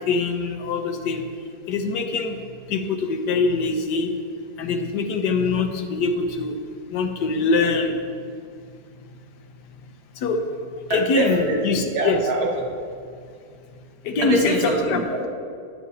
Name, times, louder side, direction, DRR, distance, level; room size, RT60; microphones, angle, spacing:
voice 1, 0.1-1.2 1.7-2.3 2.7-4.1 4.6-6.6 6.9-8.0 10.2-10.4 10.9-12.2 14.0-15.0, left 4 dB, 85° left, 5 dB, 1.3 m, -23 dB
voice 2, 10.9-11.6 11.9-12.5 14.2-15.3, right 2 dB, 65° right, -1 dB, 1.6 m, -24 dB
9.8 x 8.3 x 2.8 m, 2.3 s
omnidirectional pair, 1.8 m